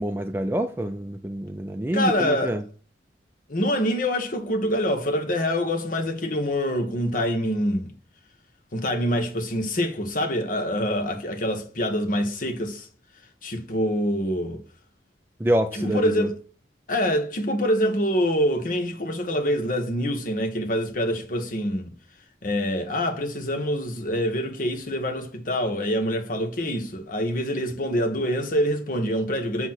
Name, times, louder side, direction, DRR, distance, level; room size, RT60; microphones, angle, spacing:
voice 1, 0.0-2.6 15.4-16.3, right 1 dB, 15° right, 0.4 m, -26 dB
voice 2, 1.9-2.6 3.5-7.9 8.7-12.9 13.4-14.6 15.7-16.4 16.9-21.9 22.4-29.7, equal, 50° left, 1.2 m, -25 dB
7.6 x 3.0 x 5.9 m
head